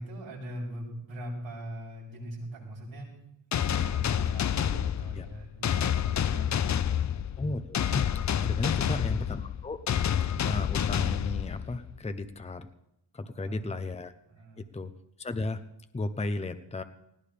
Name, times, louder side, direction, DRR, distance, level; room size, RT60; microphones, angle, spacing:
voice 1, 0.0-3.1 3.5-7.1 8.6-9.1 13.4-13.6 14.3-14.7, right 1 dB, 90° right, -4 dB, 8.0 m, -41 dB
sound 1, 3.5-12.0, left 9 dB, 40° left, 0.5 m, -28 dB
voice 2, 7.4-8.1 8.4-9.8 10.4-12.7 13.1-14.1 14.6-14.9 15.2-15.6 15.9-16.8, left 2 dB, 15° left, 9 dB, 0.8 m, -34 dB
20.0 x 16.5 x 3.4 m, 0.85 s
cardioid pair, 110°, 44 cm